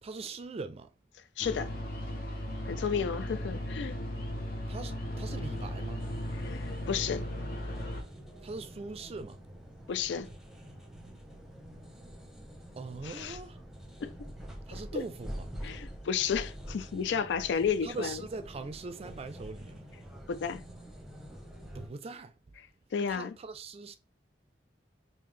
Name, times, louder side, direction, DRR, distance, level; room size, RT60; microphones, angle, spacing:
voice 1, 0.0-0.9 4.7-6.1 8.4-9.4 12.8-13.6 14.7-15.5 17.8-19.9 21.7-22.3 23.0-24.0, right 3 dB, 35° right, 0.4 m, -41 dB
voice 2, 1.4-1.7 2.7-4.0 6.3-7.2 9.9-10.3 13.0-13.4 14.0-14.3 14.7-15.0 15.6-18.2 20.3-20.6 22.9-23.3, left 7 dB, 75° left, 0.4 m, -32 dB
sound 1, 1.4-8.0, left 1 dB, 55° left, 0.9 m, -36 dB
sound 2, 5.0-21.9, equal, ahead, 0.7 m, -46 dB
3.5 x 2.7 x 3.2 m
head